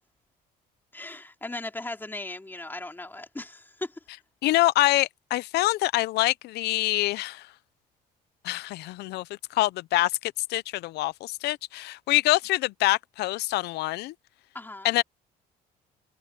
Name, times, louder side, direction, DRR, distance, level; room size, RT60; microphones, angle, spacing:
voice 1, 0.9-3.9 14.5-14.9, left 2 dB, 10° left, 2.7 m, -37 dB
voice 2, 4.4-7.4 8.4-14.1 14.8-15.0, left 18 dB, 80° left, 0.6 m, -25 dB
cardioid pair, 110°, 17 cm